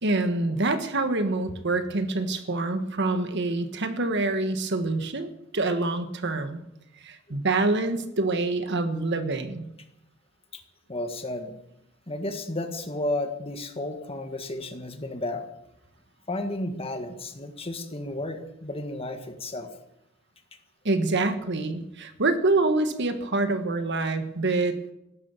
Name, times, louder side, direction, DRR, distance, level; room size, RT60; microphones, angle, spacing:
voice 1, 0.0-6.6 7.0-9.6 20.8-24.9, right 2 dB, 60° right, 9 dB, 1.5 m, -26 dB
voice 2, 10.9-11.5 12.1-15.4 16.3-19.7, left 1 dB, 30° left, 6 dB, 1.8 m, -32 dB
16.0 x 12.5 x 7.1 m, 0.85 s
head